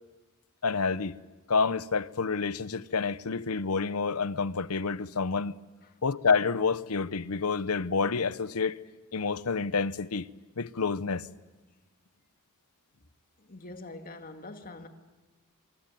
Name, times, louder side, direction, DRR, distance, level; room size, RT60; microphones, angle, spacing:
voice 1, 0.6-1.2 1.5-5.5 6.0-8.8 9.1-10.3 10.6-11.3, left 4 dB, 80° left, 0.8 m, -28 dB
voice 2, 13.4-14.9, left 2 dB, 40° left, 2.1 m, -44 dB
26.5 x 24.0 x 9.3 m
head